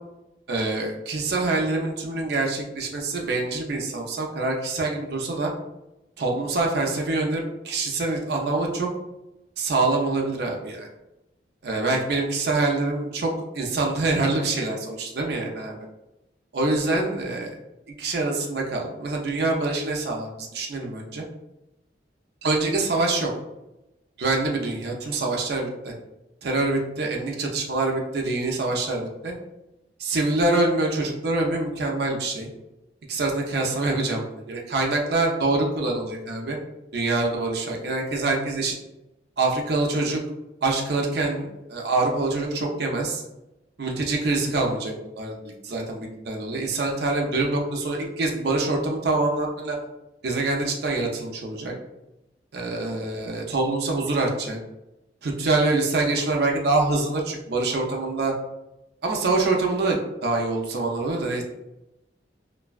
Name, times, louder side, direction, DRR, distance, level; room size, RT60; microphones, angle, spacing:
voice 1, 0.5-5.5 6.2-8.9 9.6-10.9 11.6-15.8 16.5-17.5 18.0-21.3 22.4-23.3 24.2-25.9 26.4-29.3 30.0-32.5 33.1-36.6 36.9-38.7 39.4-40.2 40.6-43.2 43.8-49.8 50.2-51.7 52.5-54.6 55.2-58.3 59.0-61.4, right 2 dB, 60° right, 0 dB, 0.4 m, -25 dB
2.5 x 2.1 x 2.3 m, 0.93 s
head